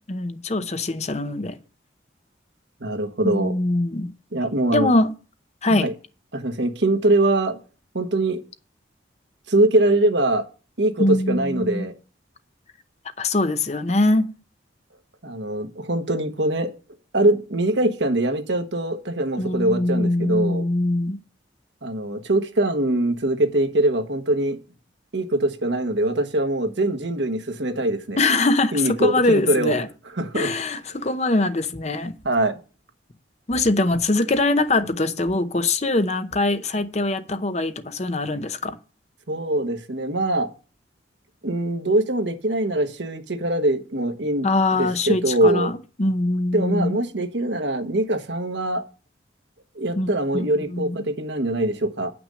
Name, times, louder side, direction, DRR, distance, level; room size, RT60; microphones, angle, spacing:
voice 1, 0.1-1.6 3.2-4.1 4.7-5.1 5.6-5.9 11.0-11.9 13.2-14.3 19.4-21.2 28.2-29.9 30.3-32.1 33.5-38.8 44.4-47.0 49.9-51.0, left 2 dB, 35° left, 0.8 m, -22 dB
voice 2, 2.8-3.5 4.3-4.9 5.8-5.9 6.3-7.6 7.9-8.4 9.5-10.4 10.8-11.9 15.2-16.7 17.1-20.7 21.8-24.6 25.1-28.2 28.7-29.7 30.2-30.5 32.2-32.6 39.3-40.5 41.4-44.5 44.8-45.7 46.5-48.8 49.7-52.1, right 1 dB, 70° right, 1.3 m, -22 dB
9.8 x 6.1 x 6.4 m
head